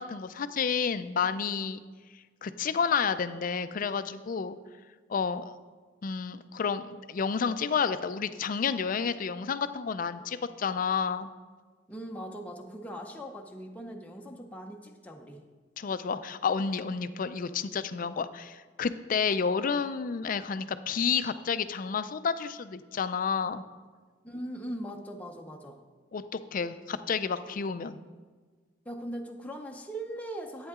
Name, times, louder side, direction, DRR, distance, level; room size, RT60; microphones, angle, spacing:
voice 1, 0.0-1.8 2.4-4.6 5.1-5.5 6.0-11.3 15.8-23.6 26.1-28.0, left 6 dB, 50° left, 12 dB, 0.4 m, -30 dB
voice 2, 11.9-15.4 24.2-25.8 28.9-30.7, right 1 dB, 10° left, 1 dB, 0.7 m, -40 dB
11.0 x 8.8 x 3.7 m, 1.4 s
head